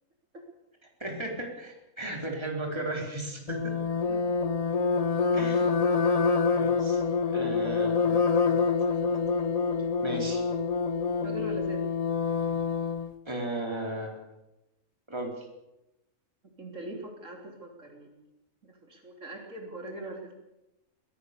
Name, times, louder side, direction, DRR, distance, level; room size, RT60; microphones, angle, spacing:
voice 1, 1.0-3.8 5.3-5.7 6.5-7.0 7.3-8.2 8.4-8.6 9.0-9.1 10.0-10.4 13.3-14.2 15.1-15.5, right 1 dB, 20° right, 1 dB, 4.1 m, -35 dB
sound 1, 3.5-13.1, left 5 dB, 30° left, 0.9 m, -26 dB
voice 2, 11.2-11.8 16.6-18.2 18.6-20.3, right 1 dB, 65° right, 1 dB, 4.1 m, -41 dB
22.5 x 17.0 x 6.8 m, 0.94 s
omnidirectional pair, 1.4 m